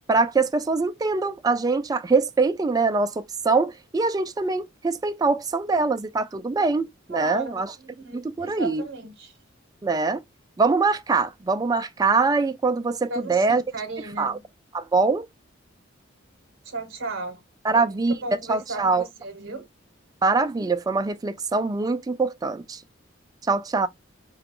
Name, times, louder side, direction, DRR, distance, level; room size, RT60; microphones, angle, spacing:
voice 1, 0.1-7.7 8.1-8.8 9.8-10.2 10.6-13.6 14.2-14.4 14.7-15.3 17.6-18.1 18.5-19.0 20.2-22.8 23.4-23.9, right 4 dB, 20° right, 0.3 m, -23 dB
voice 2, 7.1-9.3 13.1-14.4 16.6-17.4 17.7-19.7, right 2 dB, 70° right, 0.9 m, -35 dB
4.7 x 2.3 x 3.6 m
head